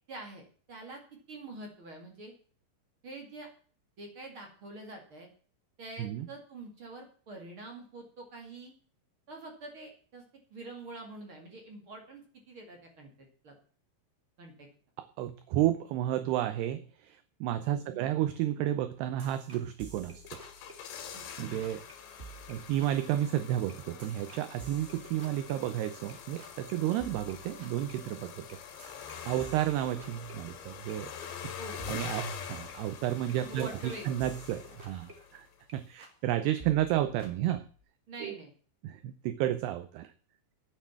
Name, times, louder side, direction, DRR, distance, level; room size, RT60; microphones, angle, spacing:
voice 1, 0.1-1.0 1.3-2.3 3.0-3.5 4.0-5.3 5.8-8.7 9.3-10.2 10.5-13.5 14.4-14.7 17.8-18.1 21.1-21.7 31.6-31.8 33.5-34.1 38.1-38.5, right 2 dB, 40° right, 2 dB, 2.1 m, -46 dB
voice 2, 15.0-20.4 21.4-21.8 22.5-28.6 29.3-31.1 31.4-31.5 31.9-35.5 35.7-37.6 38.2-38.3 38.8-40.1, right 12 dB, 80° right, 12 dB, 2.4 m, -32 dB
sound 1, 19.2-21.3 21.6-21.9 22.2-26.1 26.4-26.7 27.0-30.9 31.2-31.5 31.8-35.7 36.0-36.3 36.6-37.8, right 2 dB, 65° right, 0.6 m, -52 dB
sound 2, 20.0-35.5 35.7-35.8, left 7 dB, 70° left, 3.9 m, -45 dB
9.6 x 9.2 x 7.1 m, 0.44 s
omnidirectional pair, 5.5 m